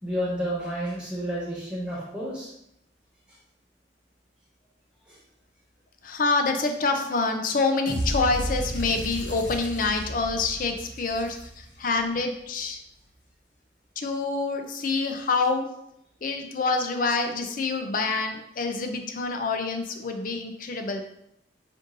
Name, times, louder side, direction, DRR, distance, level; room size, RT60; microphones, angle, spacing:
voice 1, 0.0-2.5 5.1-5.2, equal, 5° right, -6 dB, 1.1 m, -30 dB
voice 2, 6.0-12.8 14.0-15.7 16.2-21.0, left 3 dB, 50° left, 5 dB, 0.4 m, -27 dB
sound 1, 7.9-12.0, equal, 85° left, 1.0 m, -33 dB
5.2 x 2.6 x 2.6 m, 0.78 s
head